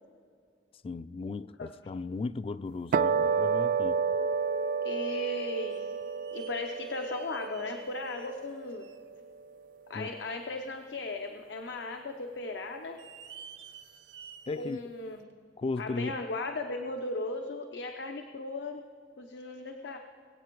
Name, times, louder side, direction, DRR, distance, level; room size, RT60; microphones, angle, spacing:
voice 1, 0.8-4.0 9.9-10.2 14.5-14.8 15.6-16.2, left 3 dB, 35° left, 0.3 m, -36 dB
sound 1, 2.9-9.4, right 5 dB, 50° right, 0.3 m, -31 dB
voice 2, 4.8-5.9 6.3-8.9 9.9-13.0 14.6-15.2 15.8-18.8 19.2-20.0, left 2 dB, 90° left, 0.7 m, -37 dB
sound 2, 4.9-5.0 5.7-9.1 9.6-9.7 10.3-10.4 11.3-11.7 12.0-12.1 12.8-14.8 15.3-15.4 16.3-16.4, right 7 dB, 80° right, 0.7 m, -52 dB
21.0 x 8.3 x 4.6 m
head